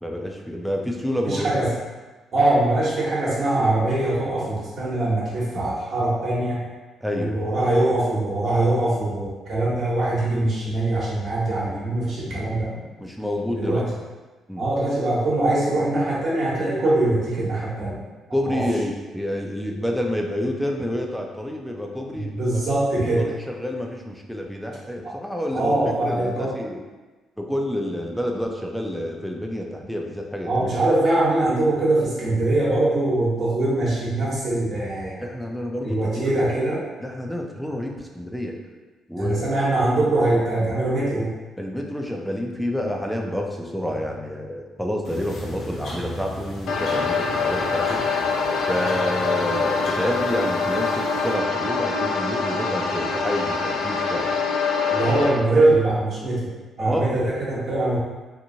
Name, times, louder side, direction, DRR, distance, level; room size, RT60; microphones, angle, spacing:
voice 1, 0.0-1.5 7.0-7.4 13.0-13.8 14.5-14.7 18.3-22.6 23.0-26.8 27.4-30.9 35.2-36.3 37.0-38.6 39.1-39.6 41.6-48.0 48.7-54.3 55.0-55.3 56.8-57.1, left 1 dB, ahead, 1 dB, 0.4 m, -28 dB
voice 2, 1.2-1.7 2.3-6.6 7.1-12.7 13.5-13.9 14.6-18.0 18.4-18.6 22.1-23.3 25.0-25.1 25.5-26.5 30.5-35.2 35.8-36.8 39.2-41.3 54.9-56.5 56.8-58.0, right 2 dB, 55° right, -7 dB, 1.1 m, -22 dB
sound 1, 45.0-51.3, equal, 60° left, 0.9 m, -39 dB
sound 2, 46.7-55.3, left 4 dB, 80° left, 0.4 m, -24 dB
2.9 x 2.5 x 2.7 m, 1.3 s
cardioid pair, 100°, 0 cm